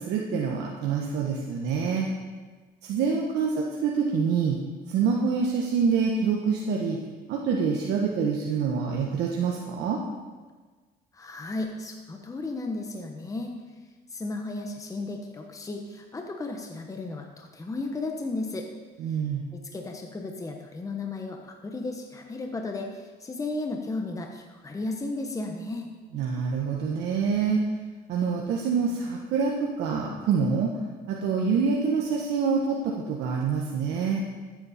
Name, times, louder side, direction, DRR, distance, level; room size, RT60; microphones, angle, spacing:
voice 1, 0.0-2.1 2.8-4.6 4.9-7.0 7.3-10.0 19.0-19.4 26.1-27.6 28.1-30.7 31.1-34.2, right 5 dB, 80° right, -1 dB, 1.3 m, -26 dB
voice 2, 11.1-13.5 14.1-18.7 19.5-25.9, left 2 dB, 20° left, 3 dB, 1.1 m, -34 dB
14.0 x 8.7 x 4.3 m, 1.4 s
cardioid pair, 110°, 17 cm